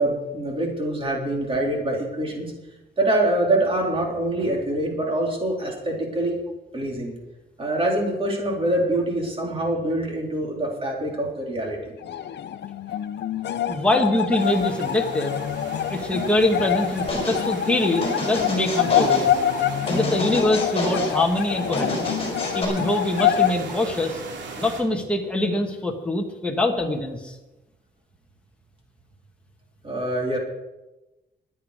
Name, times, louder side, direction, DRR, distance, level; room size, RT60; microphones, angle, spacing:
voice 1, 0.0-2.5 3.0-6.4 6.7-7.1 7.6-11.9 13.7-13.9 29.8-30.4, right 1 dB, 30° right, -1 dB, 3.7 m, -25 dB
sound 1, 12.0-23.5, left 10 dB, 70° left, 0.7 m, -26 dB
voice 2, 13.5-15.4 15.9-19.4 19.8-22.2 22.5-24.2 24.6-27.4, left 1 dB, 5° left, 1 dB, 1.4 m, -24 dB
sound 2, 14.4-24.8, right 4 dB, 85° right, 2.7 m, -38 dB
sound 3, 17.1-17.4 18.0-19.3 19.9-21.1 21.7-22.7, left 1 dB, 30° left, 4.3 m, -28 dB
22.0 x 8.2 x 5.0 m, 1.0 s
wide cardioid pair, 165°, 18 cm